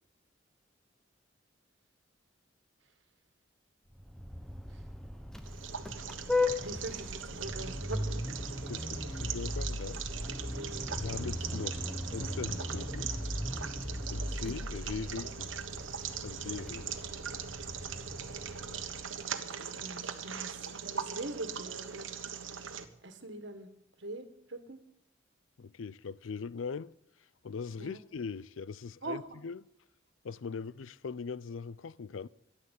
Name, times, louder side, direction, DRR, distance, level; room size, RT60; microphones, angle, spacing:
Vehicle horn car horn honking, 3.9-19.3, left 2 dB, 5° left, 0.9 m, -38 dB
sound 1, 5.4-22.8, right 7 dB, 85° right, 1.3 m, -41 dB
voice 1, 6.6-8.2 10.6-10.9 18.8-19.0 19.4-22.1 23.0-23.7 24.0-24.8 27.8-28.0 29.0-29.2, right 2 dB, 65° right, 1.8 m, -42 dB
voice 2, 8.7-10.0 11.0-11.8 12.1-13.1 14.1-15.5 16.2-16.9 25.6-26.9 27.4-29.6 30.2-32.3, left 5 dB, 85° left, 0.5 m, -40 dB
13.5 x 11.5 x 8.3 m
head